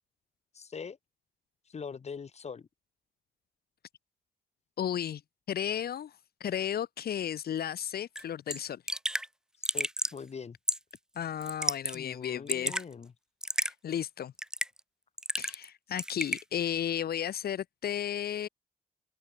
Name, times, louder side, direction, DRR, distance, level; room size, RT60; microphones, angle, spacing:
voice 1, 0.5-1.0 1.7-2.7 9.6-10.6 11.9-13.1, left 6 dB, 45° left, 5.5 m, -42 dB
voice 2, 4.8-5.2 5.5-6.1 6.4-8.8 11.2-12.8 13.6-14.3 15.4-18.5, left 9 dB, 85° left, 2.7 m, -34 dB
Raindrop / Drip, 8.2-8.3 8.5-8.6 8.9-9.3 9.6-10.2 10.7-11.0 11.4-12.0 12.2-12.8 13.4-13.7 14.4-14.8 15.2-15.7 16.0-16.4, right 1 dB, 5° right, 3.6 m, -31 dB
open air
wide cardioid pair, 145°, 16 cm